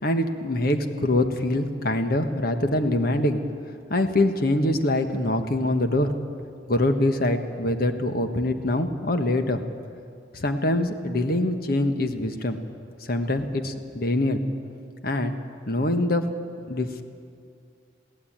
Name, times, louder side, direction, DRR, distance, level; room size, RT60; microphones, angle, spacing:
voice 1, 0.0-3.4 3.9-6.1 6.7-9.6 10.3-12.6 13.1-14.4 15.0-15.3 15.7-16.3 16.7-17.0, left 1 dB, 60° left, 7 dB, 1.4 m, -24 dB
22.5 x 16.0 x 8.8 m, 2.4 s
head